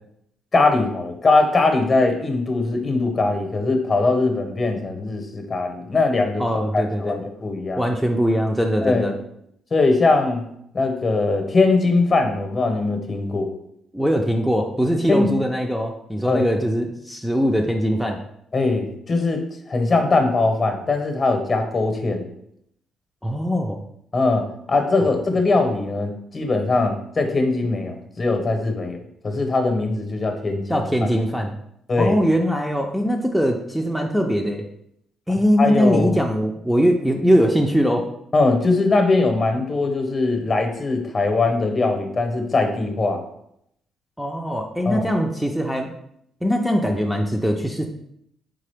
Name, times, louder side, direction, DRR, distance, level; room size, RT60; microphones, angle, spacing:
voice 1, 0.5-7.8 8.8-9.2 9.7-10.4 10.7-13.5 15.1-15.3 16.2-16.4 18.5-22.2 24.1-29.0 29.2-30.9 31.9-32.2 35.6-36.2 38.3-43.2 44.8-45.0, left 3 dB, 35° left, 5 dB, 0.8 m, -21 dB
voice 2, 6.4-7.2 7.8-9.1 13.9-18.2 23.2-23.8 25.3-25.4 30.7-31.5 32.0-34.7 35.3-38.1 44.2-45.9 46.4-47.9, equal, ahead, 1 dB, 0.4 m, -21 dB
3.8 x 3.7 x 3.3 m, 0.75 s
cardioid pair, 90°, 0 cm